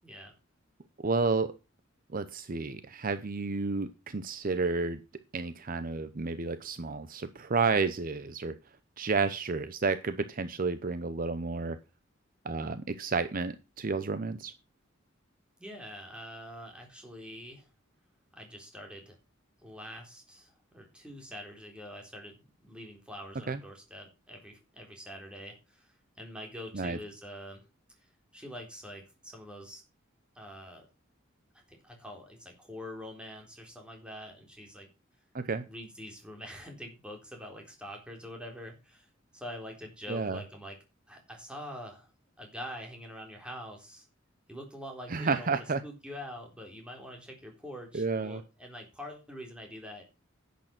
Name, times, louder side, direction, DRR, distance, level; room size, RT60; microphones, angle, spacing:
voice 1, 0.0-0.3 15.6-17.7 18.3-19.2 19.6-27.7 28.0-29.8 30.3-30.9 31.7-34.9 35.7-39.1 39.3-40.8 41.1-42.1 42.4-44.1 44.5-50.0, equal, 5° right, 1 dB, 3.8 m, -45 dB
voice 2, 1.0-1.6 2.1-5.0 5.3-8.6 9.0-11.8 12.4-14.5 23.5-23.6 26.7-27.0 35.3-35.6 40.1-40.4 45.1-45.8 47.9-48.4, right 4 dB, 45° right, 12 dB, 0.7 m, -31 dB
11.0 x 8.4 x 6.0 m, 0.29 s
head